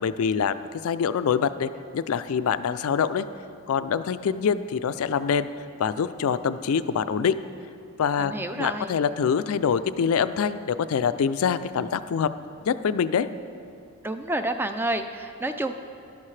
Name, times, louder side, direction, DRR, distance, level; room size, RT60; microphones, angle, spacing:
voice 1, 0.0-3.3 3.7-5.5 5.8-7.4 8.0-12.3 12.6-13.3, left 7 dB, 70° left, 13 dB, 0.4 m, -25 dB
voice 2, 8.2-8.9 14.0-15.7, right 1 dB, 10° right, 8 dB, 0.3 m, -29 dB
13.0 x 11.5 x 3.2 m, 2.5 s
head